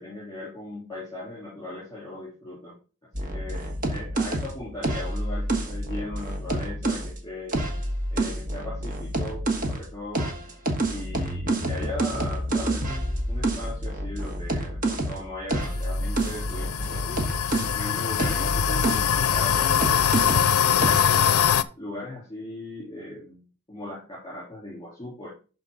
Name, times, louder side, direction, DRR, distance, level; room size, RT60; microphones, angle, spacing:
voice 1, 0.0-2.7 3.2-7.6 8.1-10.3 10.8-17.2 17.7-19.9 20.6-21.4 21.8-25.3, left 1 dB, 20° left, -7 dB, 3.4 m, -38 dB
sound 1, 3.1-7.1 7.5-9.9 10.1-17.8 18.2-20.5 20.8-21.1, right 1 dB, 40° right, 1.3 m, -28 dB
sound 2, 15.6-21.6, left 8 dB, 80° left, 0.5 m, -23 dB
11.5 x 4.0 x 3.9 m, 0.36 s
head